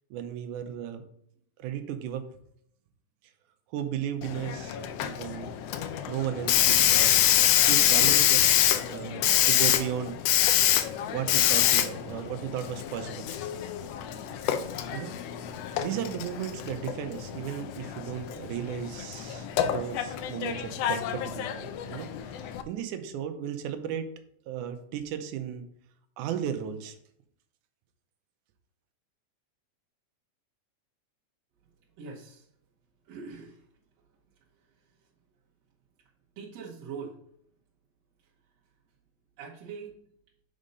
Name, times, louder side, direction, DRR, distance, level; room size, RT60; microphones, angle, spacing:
voice 1, 0.1-1.0 1.6-2.2 3.7-5.6 6.1-7.2 7.7-10.2 11.1-13.3 14.5-15.1 15.8-24.1 24.5-25.6 26.2-27.0, right 9 dB, 85° right, 8 dB, 2.2 m, -35 dB
Hiss, 4.2-22.6, left 11 dB, 85° left, 1.4 m, -26 dB
voice 2, 32.0-32.4 33.1-33.5 36.4-37.2 39.4-39.9, right 5 dB, 65° right, -3 dB, 2.0 m, -41 dB
5.3 x 5.1 x 5.3 m, 0.67 s
omnidirectional pair, 3.5 m